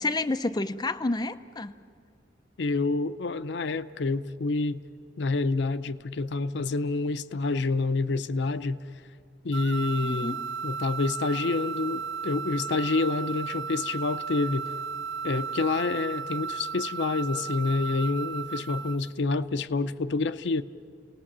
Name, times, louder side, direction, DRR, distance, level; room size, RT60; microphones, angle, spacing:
voice 1, 0.0-1.7 10.0-10.5, left 2 dB, 20° left, 0.6 m, -29 dB
voice 2, 2.6-4.8 5.2-8.8 9.4-14.7 15.2-20.6, left 3 dB, 70° left, 0.6 m, -28 dB
sound 1, 9.5-19.1, right 6 dB, 70° right, 0.6 m, -35 dB
30.0 x 18.5 x 7.4 m
head